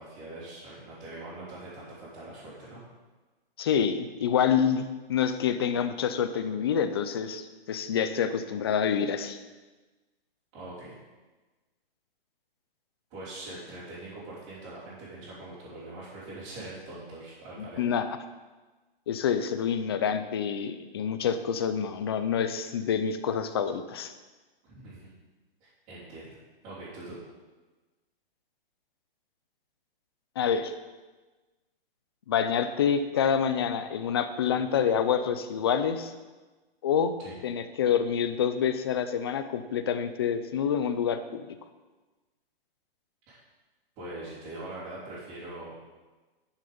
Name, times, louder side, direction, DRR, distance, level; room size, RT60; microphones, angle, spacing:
voice 1, 0.0-2.8 10.5-11.0 13.1-17.8 24.6-25.1 25.6-26.3 26.6-27.2 37.2-37.3 43.3-43.4 44.0-45.8, right 2 dB, 25° right, -10 dB, 3.4 m, -42 dB
voice 2, 3.6-9.4 17.8-18.1 19.1-24.1 30.4-30.7 32.3-36.1 36.8-37.1 37.4-41.5, left 7 dB, 25° left, 10 dB, 0.4 m, -27 dB
11.5 x 6.4 x 5.4 m, 1.2 s
hypercardioid pair, 165°, 29 cm